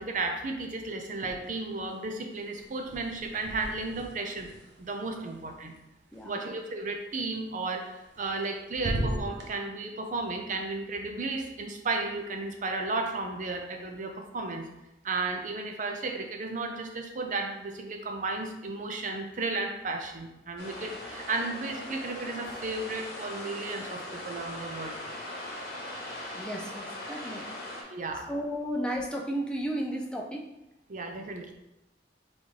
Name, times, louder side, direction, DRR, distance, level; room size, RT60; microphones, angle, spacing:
voice 1, 0.0-4.5 4.8-5.8 6.2-14.7 15.0-25.0 27.9-28.3 30.9-31.5, right 3 dB, 45° right, 4 dB, 0.6 m, -34 dB
sound 1, 1.1-1.8 2.1-6.2 7.8-8.5 8.7-9.5, right 1 dB, 85° right, 0.8 m, -38 dB
sound 2, 20.6-27.8, left 1 dB, 60° left, 1.1 m, -40 dB
voice 2, 26.3-27.6 28.3-30.4, equal, 5° left, -1 dB, 0.5 m, -33 dB
4.0 x 3.6 x 3.2 m, 0.91 s
head